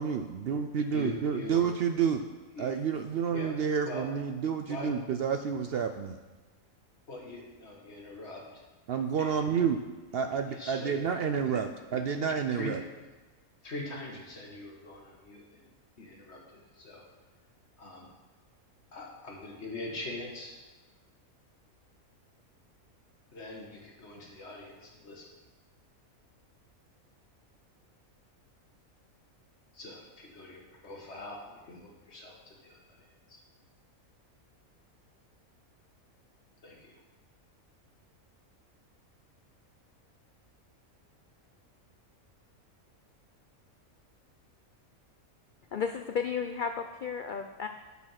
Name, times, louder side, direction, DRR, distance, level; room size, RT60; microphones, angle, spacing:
voice 1, 0.0-2.2 2.6-6.2 8.9-9.8 10.1-12.8, right 7 dB, 70° right, 7 dB, 0.5 m, -29 dB
voice 2, 0.9-1.7 2.5-2.7 3.3-3.6 3.9-4.1 4.6-4.9 7.1-8.6 9.2-9.6 9.9-10.2 10.5-11.0 11.4-11.6 11.9-12.1 12.5-12.8 13.6-17.0 17.7-18.1 18.9-20.6 23.3-25.3 29.7-33.4 36.6-37.0, left 2 dB, 50° left, -1 dB, 2.0 m, -43 dB
voice 3, 45.7-47.7, left 6 dB, 85° left, 6 dB, 0.4 m, -33 dB
8.8 x 7.0 x 5.8 m, 1.2 s
omnidirectional pair, 1.5 m